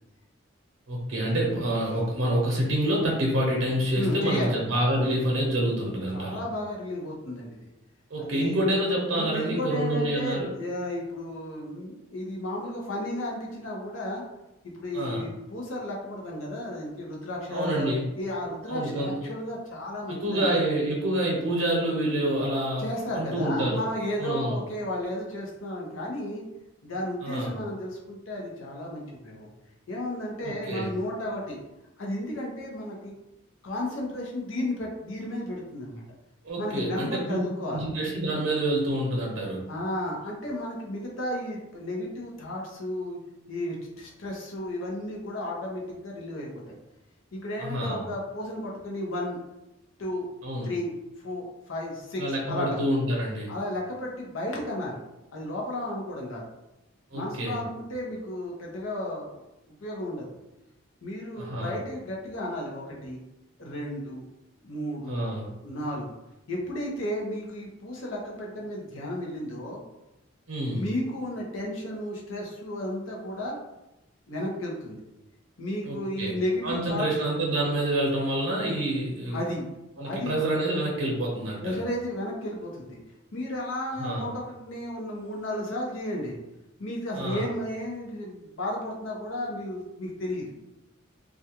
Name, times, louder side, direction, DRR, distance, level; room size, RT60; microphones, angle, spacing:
voice 1, 0.9-6.4 8.1-10.5 14.9-15.3 17.5-18.1 18.7-19.2 20.1-22.8 23.1-23.8 24.2-24.6 27.2-27.5 30.4-30.9 36.4-37.4 37.7-39.6 47.6-48.0 50.4-50.7 52.2-53.5 57.1-57.6 61.4-61.7 65.1-65.5 70.5-70.9 75.8-76.3 76.6-79.4 80.0-81.8 84.0-84.3 87.2-87.5, right 1 dB, 85° right, -3 dB, 0.7 m, -27 dB
voice 2, 3.9-4.5 6.1-7.7 8.2-8.6 9.1-14.2 14.6-20.6 22.8-26.4 26.8-29.5 29.9-31.6 32.0-33.1 33.6-36.0 36.6-37.8 39.7-43.2 43.5-46.8 47.3-49.4 50.0-50.3 50.6-50.9 51.2-52.8 53.5-55.0 55.3-56.5 57.1-59.4 59.8-60.3 61.0-63.2 63.6-64.3 64.6-65.2 65.6-66.2 66.5-69.8 70.7-73.6 74.3-75.0 75.6-77.1 79.3-79.7 80.0-80.4 81.6-83.0 83.3-86.4 86.8-90.5, left 1 dB, 90° left, -2 dB, 0.7 m, -33 dB
2.4 x 2.2 x 2.8 m, 0.94 s
head